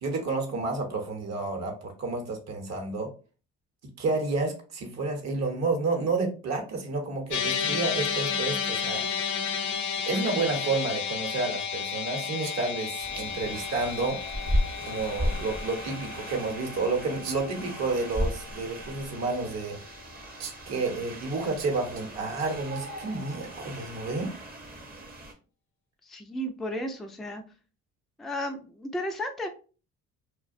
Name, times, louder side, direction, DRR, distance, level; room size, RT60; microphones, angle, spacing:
voice 1, 0.0-3.1 4.0-9.0 10.0-14.2 14.8-19.8 20.7-24.3, right 3 dB, 50° right, 3 dB, 0.9 m, -30 dB
sound 1, 7.3-19.7, left 7 dB, 60° left, 0.6 m, -33 dB
sound 2, 12.4-14.0 14.3-14.4 14.8-14.9 17.2-17.6 19.9-20.0 20.4-20.8 21.6-22.1 22.4-23.4, right 7 dB, 75° right, 0.6 m, -43 dB
sound 3, 13.0-25.3, equal, 30° right, 0.7 m, -35 dB
voice 2, 26.0-27.4 28.2-29.5, equal, ahead, 3 dB, 0.4 m, -33 dB
2.3 x 2.1 x 2.5 m, 0.36 s
supercardioid pair, 65°, 33 cm